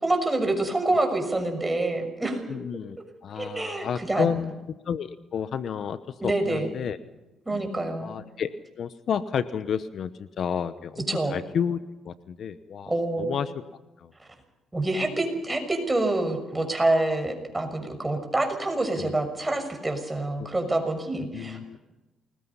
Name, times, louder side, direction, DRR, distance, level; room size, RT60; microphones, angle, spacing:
voice 1, 0.0-2.6 3.3-4.4 6.2-6.7 7.5-8.1 11.1-11.4 12.9-13.3 14.7-21.8, right 2 dB, 15° right, 5 dB, 6.4 m, -27 dB
voice 2, 2.5-3.0 3.2-4.5 4.9-7.0 7.5-7.7 8.0-8.5 8.8-11.0 11.3-12.9 13.2-13.5 19.0-19.1 20.4-20.5 21.3-21.8, left 7 dB, 60° left, 13 dB, 1.0 m, -31 dB
28.5 x 20.5 x 5.6 m, 1.1 s
cardioid pair, 90°, 0 cm